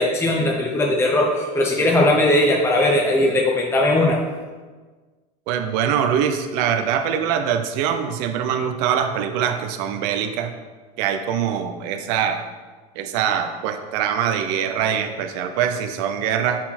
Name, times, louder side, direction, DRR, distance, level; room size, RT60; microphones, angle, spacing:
voice 1, 0.0-4.2, left 1 dB, 10° left, -1 dB, 0.7 m, -19 dB
voice 2, 5.5-10.5 11.0-12.4 13.0-16.6, right 8 dB, 75° right, 7 dB, 0.6 m, -23 dB
5.7 x 4.3 x 4.3 m, 1.4 s
supercardioid pair, 105°, 20 cm